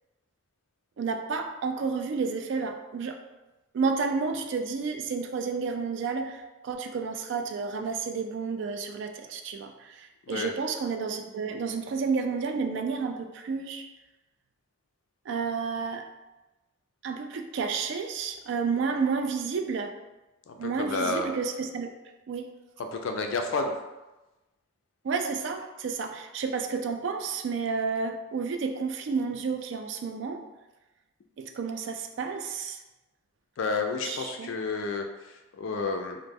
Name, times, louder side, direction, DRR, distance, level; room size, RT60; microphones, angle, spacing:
voice 1, 1.0-3.2 3.7-13.8 15.3-16.0 17.0-20.0 20.6-21.9 22.3-22.5 25.0-30.4 31.4-32.8 34.1-34.5, right 5 dB, 60° right, 5 dB, 0.3 m, -31 dB
voice 2, 20.5-21.3 22.8-23.7 33.6-36.2, left 3 dB, 65° left, 5 dB, 0.3 m, -31 dB
3.1 x 2.0 x 3.4 m, 1.1 s
head